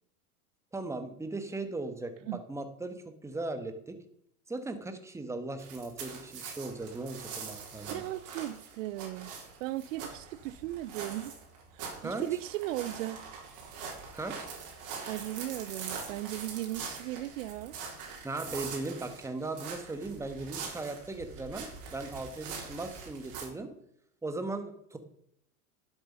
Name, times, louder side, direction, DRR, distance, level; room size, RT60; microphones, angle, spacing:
voice 1, 0.7-4.0 4.5-8.0 12.0-12.2 14.1-14.5 18.2-23.7 24.2-25.0, right 2 dB, 5° right, 1.3 m, -38 dB
sound 1, 5.6-23.4, right 5 dB, 40° right, 3.9 m, -43 dB
voice 2, 7.9-9.3 9.6-11.4 11.7-13.3 15.1-17.8, right 15 dB, 60° right, 0.6 m, -37 dB
11.0 x 8.1 x 5.5 m
hypercardioid pair, 115°, 44 cm